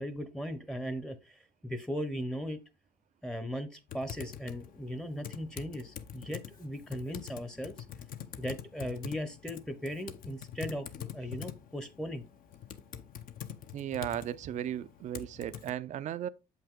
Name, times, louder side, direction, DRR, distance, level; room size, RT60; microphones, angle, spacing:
voice 1, 0.0-2.6 3.2-7.7 8.4-12.2, equal, 5° left, 0.7 m, -38 dB
Typing, 3.9-15.7, left 9 dB, 55° left, 0.8 m, -45 dB
voice 2, 13.7-16.3, right 11 dB, 45° right, 0.4 m, -36 dB
7.5 x 5.7 x 3.6 m
cardioid pair, 110°, 17 cm